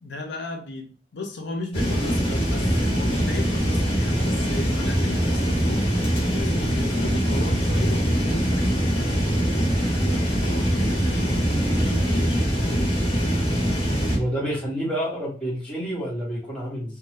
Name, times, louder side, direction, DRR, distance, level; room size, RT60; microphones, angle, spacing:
voice 1, 0.0-12.9, left 2 dB, 75° left, 3 dB, 0.5 m, -36 dB
sound 1, 1.7-14.2, equal, 35° left, 1.1 m, -23 dB
voice 2, 14.1-17.0, equal, 5° left, -6 dB, 1.2 m, -28 dB
2.7 x 2.2 x 3.2 m, 0.39 s
head